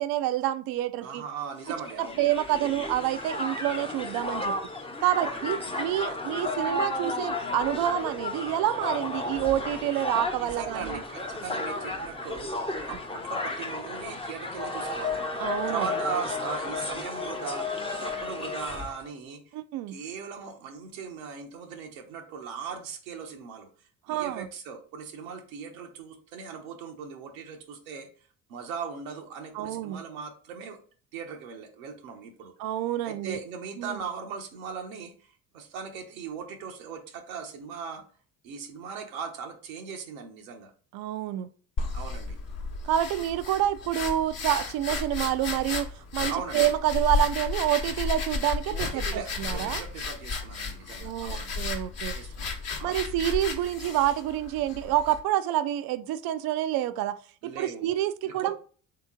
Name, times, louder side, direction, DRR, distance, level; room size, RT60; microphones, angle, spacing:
voice 1, 0.0-1.2 2.2-4.5 5.0-11.0 15.4-15.9 19.5-20.0 24.1-24.5 29.5-30.0 32.6-33.4 33.8-34.0 40.9-41.5 42.8-49.8 51.0-52.2 52.8-58.6, right 12 dB, 60° right, 0.5 m, -28 dB
voice 2, 1.0-2.2 5.1-5.5 10.3-15.3 15.7-19.6 19.9-23.7 24.1-28.1 28.5-30.8 31.1-32.5 33.0-38.0 38.4-40.7 41.9-42.4 46.3-46.7 48.7-51.6 52.1-52.9 57.4-57.8 58.2-58.6, right 6 dB, 85° right, 0.9 m, -39 dB
Crowd, 1.6-19.0, left 2 dB, 15° left, 0.7 m, -33 dB
sound 1, 41.8-55.2, left 4 dB, 40° left, 1.0 m, -33 dB
3.5 x 2.9 x 3.6 m
hypercardioid pair, 70°, 41 cm